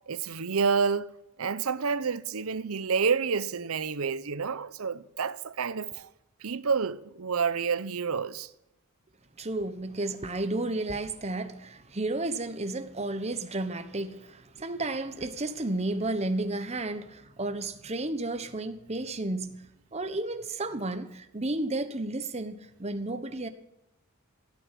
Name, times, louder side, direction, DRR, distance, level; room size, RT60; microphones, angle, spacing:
voice 1, 0.1-1.1 1.4-6.1 6.4-8.5, right 5 dB, 75° right, 0.7 m, -29 dB
voice 2, 9.4-19.6 19.9-23.5, right 2 dB, 30° right, 1.1 m, -32 dB
16.5 x 9.7 x 7.4 m
head